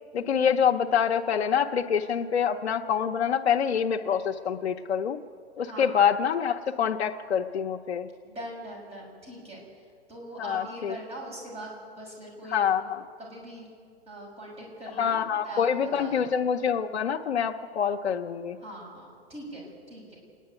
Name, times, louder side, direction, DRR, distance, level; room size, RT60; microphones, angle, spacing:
voice 1, 0.1-5.2 5.6-8.1 10.4-11.0 12.5-13.0 15.0-18.6, left 7 dB, 90° left, 2 dB, 0.9 m, -26 dB
voice 2, 5.6-6.0 8.2-9.6 10.1-12.6 13.2-13.7 14.1-15.6 16.0-16.4 18.6-20.2, right 1 dB, 20° right, -1 dB, 6.6 m, -42 dB
28.0 x 10.5 x 9.1 m, 2.1 s
hypercardioid pair, 140°, 32 cm